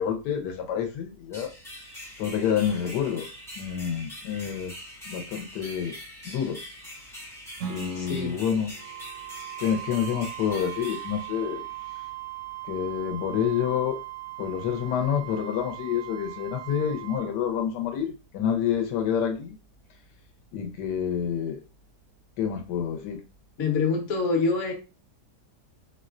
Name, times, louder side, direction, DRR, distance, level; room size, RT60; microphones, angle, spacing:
voice 1, 0.0-1.5 2.2-3.3 3.6-4.7 5.1-5.9 6.2-6.6 7.7-8.7 9.6-11.7 12.7-14.0 14.4-19.6 20.5-21.6 22.4-23.2, left 8 dB, 85° left, 3 dB, 1.2 m, -28 dB
sound 1, 1.3-12.0, equal, 5° left, 0.5 m, -44 dB
Strum, 7.6-12.8, right 6 dB, 70° right, 0.8 m, -45 dB
voice 2, 8.0-8.3 23.6-24.7, left 4 dB, 55° left, 2 dB, 1.0 m, -25 dB
Wind instrument woodwind instrument, 8.8-17.3, right 18 dB, 85° right, 0.5 m, -39 dB
4.3 x 2.1 x 2.4 m, 0.31 s
omnidirectional pair, 1.8 m